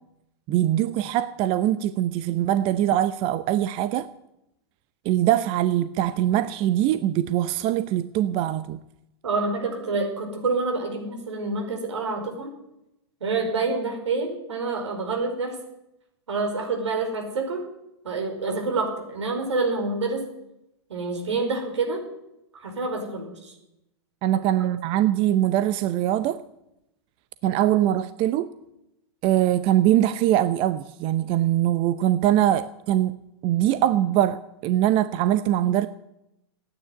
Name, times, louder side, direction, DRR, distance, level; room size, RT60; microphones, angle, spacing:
voice 1, 0.5-4.1 5.0-8.8 24.2-26.4 27.4-28.5 29.2-33.2 33.4-35.9, right 12 dB, 40° right, 0.7 m, -22 dB
voice 2, 9.2-12.5 13.2-15.5 16.3-17.6 18.0-20.2 20.9-22.0 22.5-23.5, right 3 dB, 85° right, 5.1 m, -27 dB
15.0 x 9.7 x 9.5 m
hypercardioid pair, 120°, 15 cm